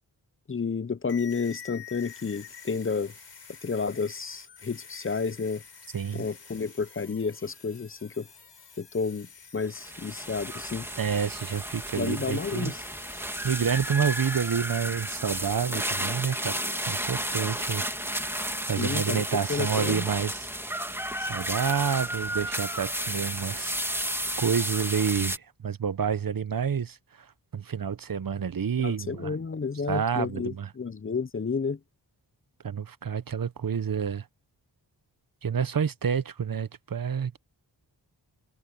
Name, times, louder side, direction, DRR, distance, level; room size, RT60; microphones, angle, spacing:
voice 1, 0.5-3.1 3.6-5.6 6.1-8.3 8.8-9.3 9.5-10.9 11.9-12.8 18.8-19.2 19.5-20.1 28.8-31.8, left 5 dB, 30° left, 0.7 m, -31 dB
sound 1, 1.1-15.1, left 7 dB, 70° left, 4.5 m, -49 dB
voice 2, 5.9-6.3 11.0-12.7 13.4-17.9 18.7-20.5 21.2-23.8 24.4-27.3 27.5-29.4 29.9-30.7 32.6-34.3 35.4-37.4, right 7 dB, 50° right, 0.9 m, -29 dB
sound 2, 9.6-25.4, right 1 dB, 5° right, 2.4 m, -32 dB
cardioid pair, 60°, 43 cm